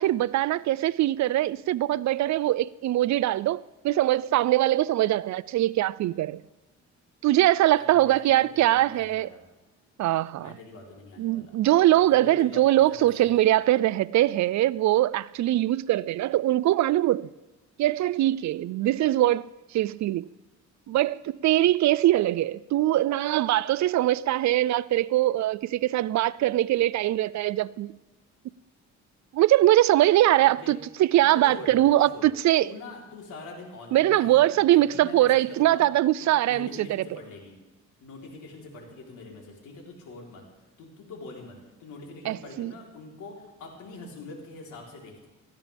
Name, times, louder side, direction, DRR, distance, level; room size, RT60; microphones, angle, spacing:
voice 1, 0.0-3.6 3.8-6.4 7.2-9.3 10.0-10.5 11.2-17.3 17.8-20.3 20.9-27.9 29.3-32.7 33.9-36.9 42.3-42.7, right 14 dB, 65° right, 0.5 m, -22 dB
voice 2, 7.7-9.4 10.4-11.6 11.9-13.3 30.5-30.7 31.3-32.3 32.6-35.8 36.2-37.5 38.0-40.4 40.8-45.3, left 3 dB, 85° left, 3.8 m, -44 dB
18.5 x 14.0 x 3.5 m
cardioid pair, 90°, 30 cm